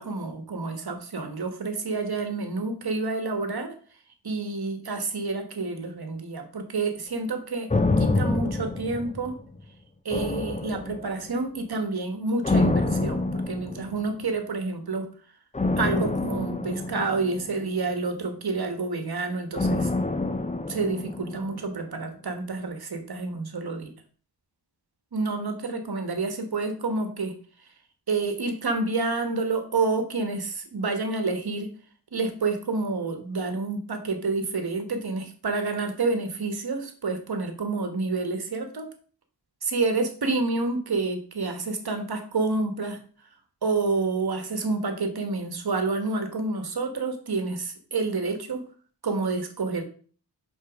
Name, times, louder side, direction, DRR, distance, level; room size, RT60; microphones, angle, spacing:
voice 1, 0.0-3.7 4.2-7.7 8.0-9.3 10.0-15.1 15.8-19.9 20.7-23.9 25.1-27.4 27.6-27.7 28.1-31.7 32.1-38.9 39.6-43.0 43.6-48.6 49.0-49.8, right 3 dB, 60° right, 6 dB, 1.4 m, -29 dB
sound 1, 7.7-9.6 10.1-11.4 12.4-14.2 15.5-17.9 19.5-21.7 22.0-22.1, left 2 dB, 15° left, 0.6 m, -27 dB
5.5 x 4.6 x 5.0 m, 0.43 s
wide cardioid pair, 75°, 41 cm